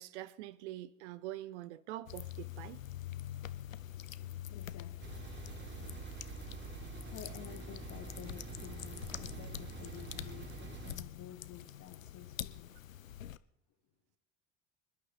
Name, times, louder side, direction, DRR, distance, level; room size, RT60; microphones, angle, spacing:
voice 1, 0.0-2.8, right 14 dB, 60° right, 0.8 m, -44 dB
sound 1, 2.1-13.4, left 11 dB, 80° left, 0.6 m, -46 dB
voice 2, 4.2-5.2 7.1-12.7, left 11 dB, 45° left, 1.6 m, -51 dB
sound 2, 5.0-11.0, right 5 dB, 25° right, 2.7 m, -46 dB
26.0 x 11.5 x 3.2 m
figure-of-eight pair, 65°, 39 cm